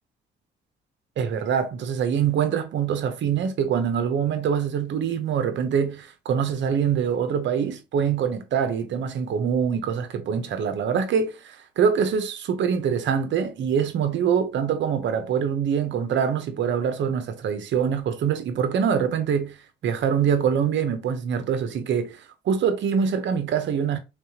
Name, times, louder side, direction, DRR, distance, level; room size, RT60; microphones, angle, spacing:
voice 1, 1.2-19.6 19.8-24.0, right 7 dB, 70° right, 0.9 m, -24 dB
3.6 x 3.3 x 3.0 m
cardioid pair, 90°, 20 cm